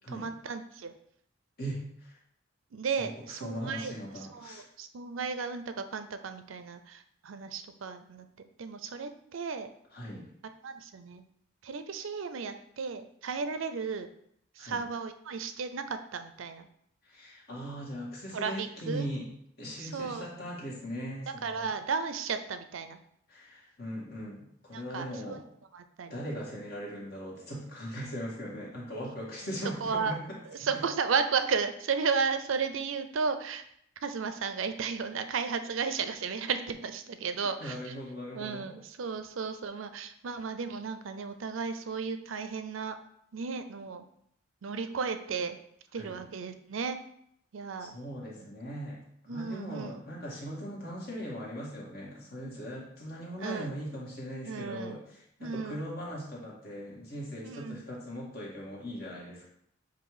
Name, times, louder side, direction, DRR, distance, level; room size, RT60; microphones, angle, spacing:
voice 1, 0.1-0.9 2.7-9.7 10.4-11.2 11.6-14.1 14.6-16.7 18.3-19.1 19.8-20.3 21.4-23.0 24.7-25.4 25.7-26.2 29.8-30.2 30.5-33.6 34.0-37.9 38.3-43.0 43.3-44.1 44.6-45.6 45.9-47.0 47.5-48.0 48.4-48.5 49.3-50.0 53.4-53.7 54.5-55.0 55.4-55.8 57.4-57.8, right 5 dB, 90° right, 9 dB, 0.5 m, -34 dB
voice 2, 1.6-2.2 3.0-4.6 9.9-10.3 14.6-14.8 17.0-19.3 19.6-21.7 23.3-25.4 26.1-30.7 37.6-38.8 45.9-46.2 47.8-49.0 49.3-59.5, equal, 50° left, -4 dB, 1.9 m, -39 dB
7.8 x 2.7 x 4.8 m, 0.71 s
head